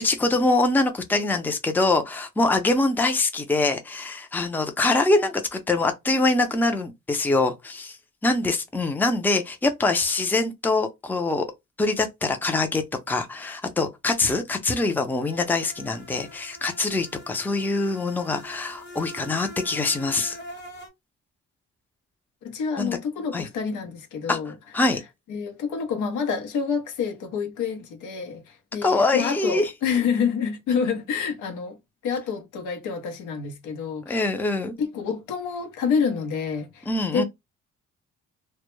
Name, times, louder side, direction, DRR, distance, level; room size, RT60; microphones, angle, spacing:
voice 1, 0.0-8.0 8.2-11.4 11.8-20.4 22.8-23.0 23.3-23.5 24.3-24.4 24.7-25.0 28.8-29.7 34.1-34.7 36.9-37.2, left 2 dB, 5° left, 0.4 m, -24 dB
sound 1, 15.2-20.9, equal, 35° left, 0.9 m, -43 dB
voice 2, 22.4-24.5 25.3-31.8 32.0-34.2 34.8-36.9 37.1-37.2, left 6 dB, 80° left, 0.7 m, -28 dB
2.2 x 2.1 x 3.0 m
cardioid pair, 90°, 30 cm